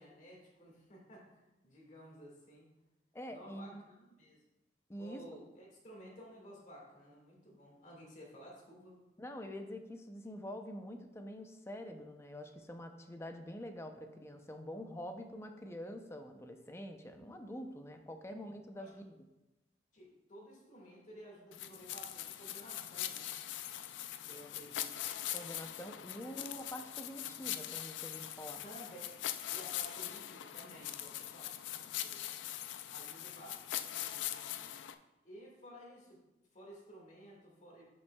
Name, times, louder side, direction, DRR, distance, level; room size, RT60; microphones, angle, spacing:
voice 1, 0.0-2.7 3.3-4.4 5.0-9.0 18.2-18.4 18.8-18.9 19.9-23.3 24.1-24.9 26.3-26.4 28.6-29.2 29.5-32.4 32.9-34.5 35.2-36.2 36.5-37.8, equal, 45° left, -2 dB, 1.9 m, -54 dB
voice 2, 3.1-3.9 4.9-5.2 9.2-19.1 25.3-28.6, equal, 15° left, 5 dB, 0.5 m, -46 dB
sound 1, 21.5-34.9, left 12 dB, 80° left, 0.4 m, -42 dB
10.5 x 5.4 x 2.3 m, 0.99 s
head